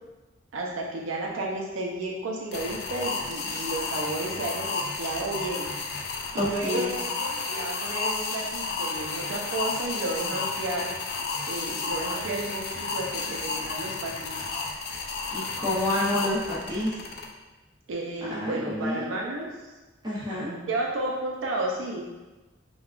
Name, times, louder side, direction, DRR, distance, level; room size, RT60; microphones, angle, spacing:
voice 1, 0.5-5.7 6.3-10.9 11.4-14.4 17.9-19.5 20.4-22.0, right 2 dB, 85° right, -1 dB, 0.4 m, -32 dB
sound 1, 2.5-17.2, left 4 dB, 55° left, 0.3 m, -32 dB
voice 2, 6.3-6.9 15.3-17.0 18.3-19.1 20.0-20.5, left 1 dB, 20° right, -8 dB, 0.6 m, -28 dB
3.5 x 2.2 x 2.3 m, 1.1 s
head